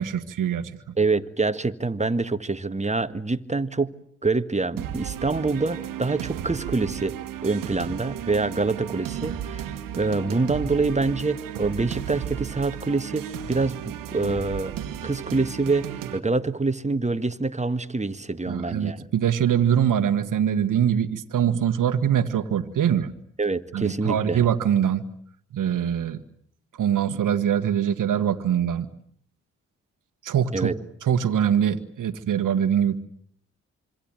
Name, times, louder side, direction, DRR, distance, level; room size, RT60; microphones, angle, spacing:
voice 1, 0.0-1.0 18.5-23.1 23.7-25.0 25.5-26.2 26.8-28.9 30.2-30.7 31.0-33.0, right 9 dB, 70° right, 10 dB, 1.7 m, -23 dB
voice 2, 1.0-3.9 4.2-7.1 7.4-14.7 15.0-19.1 23.4-24.4 30.5-30.8, right 3 dB, 20° right, 11 dB, 1.9 m, -26 dB
sound 1, 4.8-16.2, right 9 dB, 90° right, 1.8 m, -34 dB
26.5 x 25.0 x 9.1 m, 0.64 s
supercardioid pair, 45°, 32 cm